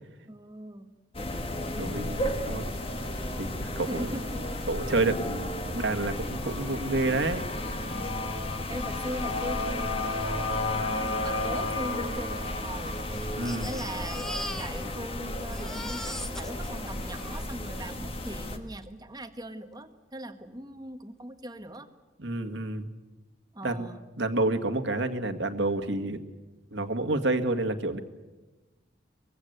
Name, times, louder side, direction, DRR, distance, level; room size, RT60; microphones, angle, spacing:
voice 1, 0.3-0.9 3.8-4.6 8.5-13.0 13.6-21.9 23.5-24.0, right 1 dB, 20° right, 8 dB, 1.4 m, -40 dB
sound 1, 1.1-18.6, left 1 dB, 30° left, 1.8 m, -33 dB
voice 2, 1.7-2.7 3.4-4.1 4.7-7.4 13.4-13.7 22.2-22.9 23.6-23.9 24.2-26.2 26.7-28.0, right 2 dB, 65° right, 7 dB, 1.9 m, -29 dB
Crying sobbing, 11.1-11.2 11.4-11.5 12.2-15.1 15.4-18.0 18.8-18.9 19.2-19.3, equal, 5° left, 1.1 m, -41 dB
24.0 x 22.5 x 8.2 m, 1.1 s
head